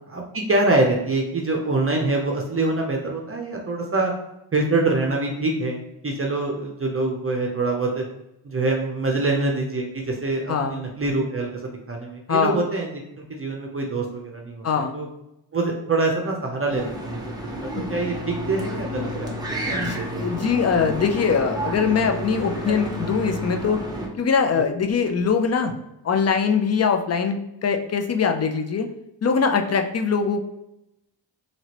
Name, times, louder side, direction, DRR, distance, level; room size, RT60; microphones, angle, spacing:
voice 1, 0.1-4.1 4.5-8.0 8.4-12.9 13.2-15.1 15.5-20.3, right 2 dB, 30° right, 0 dB, 0.6 m, -25 dB
voice 2, 10.5-10.8 12.3-12.6 14.6-15.0 17.8-17.9 19.7-23.8 24.2-25.7 26.0-28.9 29.2-30.4, left 6 dB, 35° left, 6 dB, 0.5 m, -22 dB
sound 1, 16.7-24.1, equal, 10° right, 0.9 m, -30 dB
2.9 x 2.7 x 2.9 m, 0.87 s
cardioid pair, 55°, 47 cm